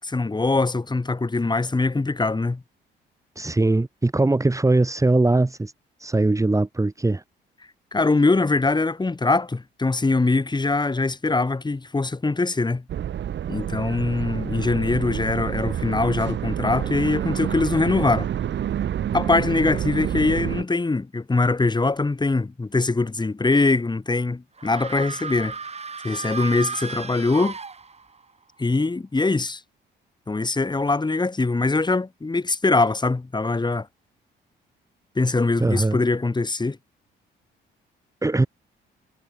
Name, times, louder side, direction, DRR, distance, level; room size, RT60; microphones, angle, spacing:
voice 1, 0.0-2.6 7.9-12.8 13.5-18.3 19.1-25.6 26.0-27.6 28.6-29.6 30.3-33.9 35.2-36.8, left 3 dB, 20° left, 7.8 m, -22 dB
voice 2, 3.4-5.7 6.0-7.2 35.6-36.0 38.2-38.5, right 2 dB, 15° right, 4.6 m, -21 dB
sound 1, 12.9-20.6, right 10 dB, 65° right, 5.4 m, -28 dB
sound 2, 24.6-28.3, right 4 dB, 30° right, 5.1 m, -34 dB
cardioid pair, 90°, 20 cm